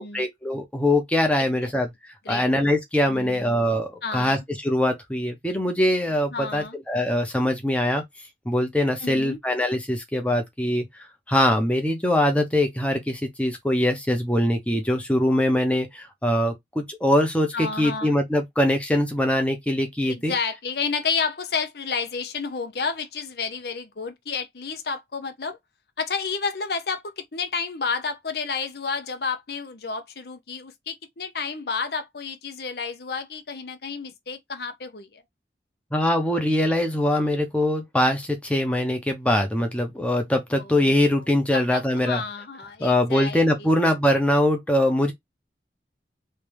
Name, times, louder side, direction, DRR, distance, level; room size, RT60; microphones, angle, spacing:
voice 1, 0.0-1.9 2.3-8.0 8.5-10.8 11.3-20.3 35.9-42.2 42.8-45.1, left 1 dB, 5° left, 0.9 m, -22 dB
voice 2, 3.1-3.4 4.0-4.4 6.3-6.8 9.0-9.4 17.5-18.2 20.1-25.6 26.0-35.2 40.6-41.2 41.5-43.7, left 5 dB, 65° left, 0.8 m, -31 dB
3.3 x 2.8 x 3.3 m
head